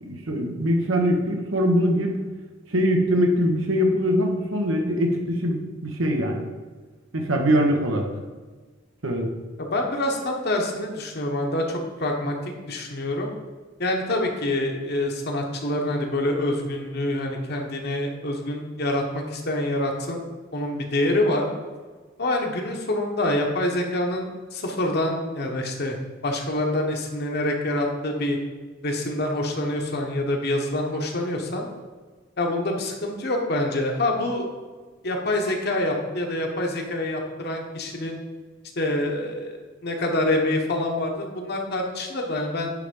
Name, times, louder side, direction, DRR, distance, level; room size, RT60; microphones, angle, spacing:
voice 1, 0.0-2.2 2.7-6.5 7.1-8.1 9.0-9.3, equal, 85° right, 2 dB, 1.3 m, -22 dB
voice 2, 9.6-13.3 13.8-20.2 20.5-21.5 22.2-26.0 26.2-28.4 28.8-31.7 32.4-34.5 35.0-38.2 38.8-42.7, left 1 dB, 55° left, 2 dB, 1.2 m, -26 dB
9.9 x 3.5 x 5.4 m, 1.4 s
head